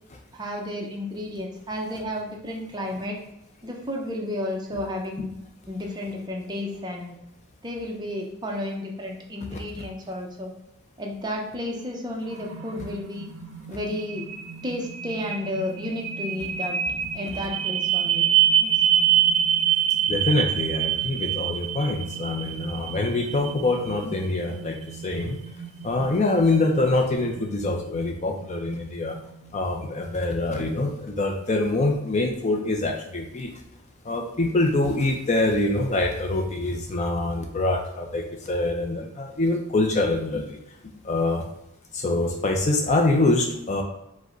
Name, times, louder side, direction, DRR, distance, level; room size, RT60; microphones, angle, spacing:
voice 1, 0.3-3.2 3.6-5.3 5.7-7.2 7.6-10.5 11.0-13.3 13.7-14.2 14.6-16.8 17.1-18.3 18.6-18.7, left 1 dB, 20° right, 0 dB, 0.5 m, -32 dB
voice 2, 9.5-9.8 20.1-25.4 25.8-29.2 29.5-33.5 34.0-40.6 41.0-41.4 41.9-43.8, left 2 dB, 30° left, 2 dB, 0.4 m, -25 dB
sound 1, 11.9-29.6, right 10 dB, 70° right, 0.5 m, -27 dB
5.1 x 2.1 x 3.8 m, 0.84 s
head